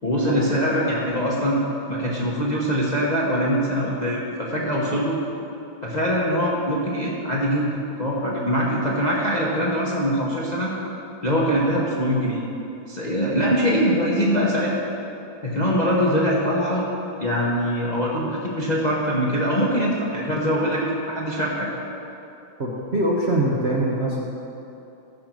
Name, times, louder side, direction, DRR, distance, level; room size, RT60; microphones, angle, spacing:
voice 1, 0.0-1.6 1.9-5.2 5.8-10.7 11.2-12.4 12.9-14.7 15.4-16.8 17.2-21.7, equal, 30° left, -4 dB, 0.8 m, -23 dB
voice 2, 22.6-24.2, right 1 dB, 50° right, -4 dB, 0.8 m, -23 dB
14.0 x 5.3 x 6.1 m, 2.8 s
omnidirectional pair, 2.3 m